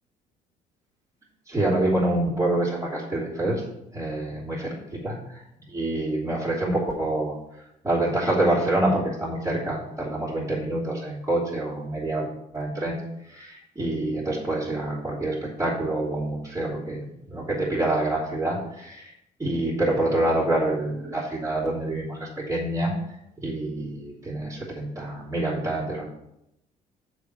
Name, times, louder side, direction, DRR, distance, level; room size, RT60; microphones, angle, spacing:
voice 1, 1.5-3.6 3.9-4.7 5.0-5.2 5.7-7.4 7.8-12.2 12.5-19.1 19.4-22.9 23.4-26.0, right 1 dB, 15° right, -10 dB, 3.1 m, -26 dB
6.8 x 5.1 x 6.4 m, 0.82 s
supercardioid pair, 80°, 17 cm